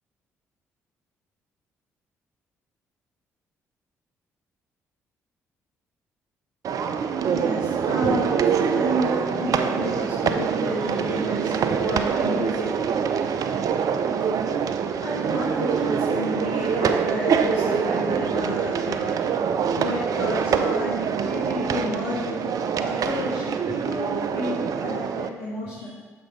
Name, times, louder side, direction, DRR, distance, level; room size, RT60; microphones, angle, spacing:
sound 1, 6.6-25.3, right 7 dB, 55° right, 0.5 m, -25 dB
voice 1, 7.3-8.3 8.6-13.5 15.0-19.2 19.7-22.4 22.8-25.9, left 1 dB, 70° left, -9 dB, 1.5 m, -31 dB
6.6 x 4.3 x 5.6 m, 1.4 s
hypercardioid pair, 45°, 7 cm